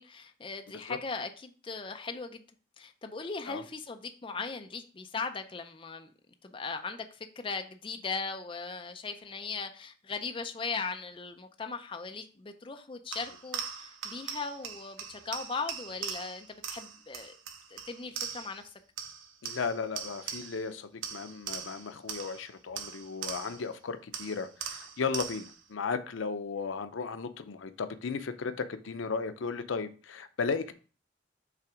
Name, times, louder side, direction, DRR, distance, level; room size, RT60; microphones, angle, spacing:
voice 1, 0.0-2.4 2.8-6.1 6.4-17.3 17.7-18.6, left 4 dB, 25° left, 0.4 m, -38 dB
sound 1, 13.1-18.7 19.0-20.7 21.0-23.7 24.1-25.6, right 7 dB, 85° right, 0.7 m, -41 dB
voice 2, 19.4-30.7, left 5 dB, 85° left, 0.5 m, -35 dB
5.8 x 3.4 x 4.9 m
head